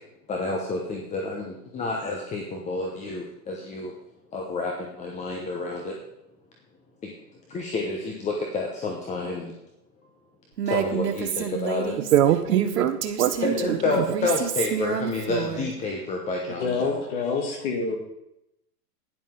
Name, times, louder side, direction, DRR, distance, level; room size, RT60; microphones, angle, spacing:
voice 1, 0.3-3.9 4.3-6.0 7.0-7.1 7.5-9.5 10.7-12.0 13.4-17.0, left 3 dB, 15° left, 0 dB, 1.0 m, -29 dB
Female speech woman speaking, 10.6-15.7, right 8 dB, 90° right, 1.5 m, -29 dB
voice 2, 12.1-14.0, right 11 dB, 60° right, 9 dB, 1.0 m, -23 dB
voice 3, 16.6-18.0, left 4 dB, 40° left, 2 dB, 2.7 m, -27 dB
12.5 x 10.0 x 3.8 m, 0.85 s
hypercardioid pair, 140°, 48 cm